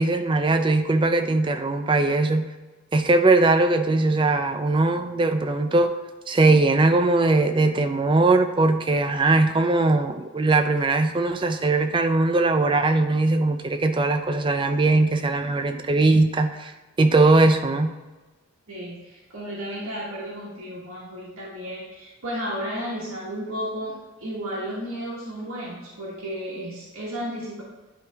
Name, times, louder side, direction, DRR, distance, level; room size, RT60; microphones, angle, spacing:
voice 1, 0.0-2.5 2.9-5.9 6.3-16.7 17.0-17.9, right 2 dB, 25° right, 7 dB, 0.4 m, -20 dB
voice 2, 18.7-27.6, equal, 90° right, -6 dB, 1.5 m, -33 dB
10.5 x 3.5 x 3.5 m, 1.2 s
head